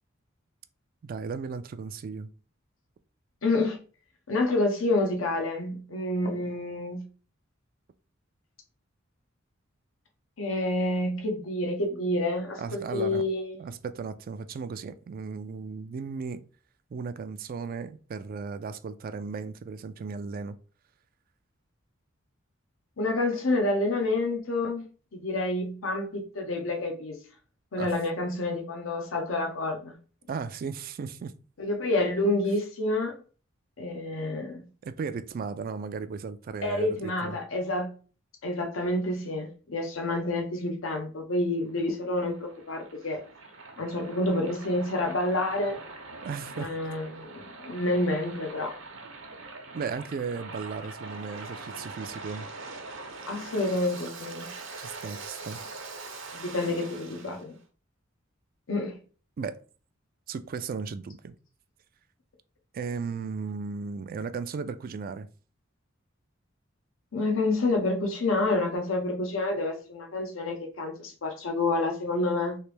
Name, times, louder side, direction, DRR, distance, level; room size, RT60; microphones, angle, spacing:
voice 1, 1.0-2.3 12.6-13.3 13.6-16.4 16.9-20.6 27.8-27.9 30.3-31.3 34.8-37.4 46.2-46.7 49.7-52.5 54.8-55.6 56.6-56.7 59.4-59.6 60.3-61.3 62.7-65.3, right 5 dB, 45° right, 0.3 m, -35 dB
voice 2, 3.4-3.8 4.3-7.1 10.4-13.6 23.0-24.8 25.1-27.2 27.7-29.9 31.6-33.2 33.8-34.6 36.6-37.9 38.4-43.2 43.8-45.8 46.6-48.7 53.3-54.5 56.3-57.6 58.7-59.0 67.1-72.6, left 2 dB, 75° left, 0.7 m, -28 dB
Waves surf, 41.7-57.4, right 3 dB, 70° right, 0.8 m, -43 dB
3.3 x 2.9 x 3.2 m
head